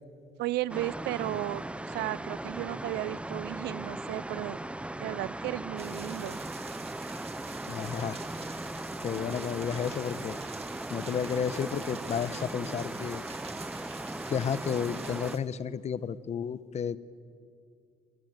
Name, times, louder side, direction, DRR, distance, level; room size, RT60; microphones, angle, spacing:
voice 1, 0.4-4.6 5.0-6.4, right 17 dB, 80° right, 22 dB, 0.5 m, -34 dB
sound 1, 0.7-15.4, right 1 dB, 5° right, 0.7 m, -38 dB
sound 2, 5.8-15.4, right 6 dB, 35° right, 1.9 m, -47 dB
voice 2, 7.7-8.2 9.0-10.4 10.9-13.2 14.3-17.0, left 7 dB, 40° left, 16 dB, 0.9 m, -32 dB
25.0 x 23.0 x 8.1 m, 2.4 s
cardioid pair, 110°, 17 cm